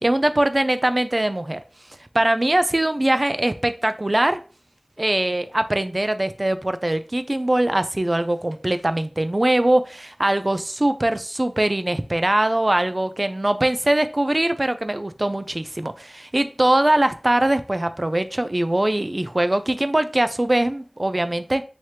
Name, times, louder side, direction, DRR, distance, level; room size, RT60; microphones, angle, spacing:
voice 1, 0.0-1.6 2.1-4.4 5.0-21.6, right 1 dB, 45° right, 11 dB, 0.4 m, -22 dB
4.9 x 2.9 x 2.9 m, 0.35 s
wide cardioid pair, 40°, 0 cm